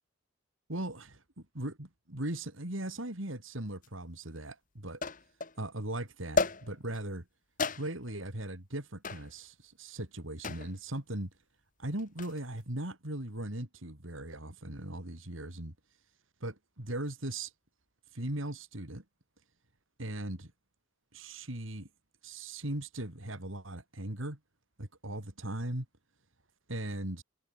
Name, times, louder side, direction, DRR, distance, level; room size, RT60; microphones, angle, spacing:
voice 1, 0.7-5.0 5.6-7.3 7.8-11.3 11.8-15.7 16.4-17.5 18.1-19.0 20.0-20.5 21.1-21.9 22.2-24.4 24.8-25.9 26.7-27.2, right 1 dB, 75° right, 3.8 m, -38 dB
sound 1, 3.8-3.9 5.0-5.6 6.4-7.0 7.6-8.2 9.0-9.3 10.4-10.8 12.0-12.4, left 3 dB, 40° left, 2.0 m, -33 dB
head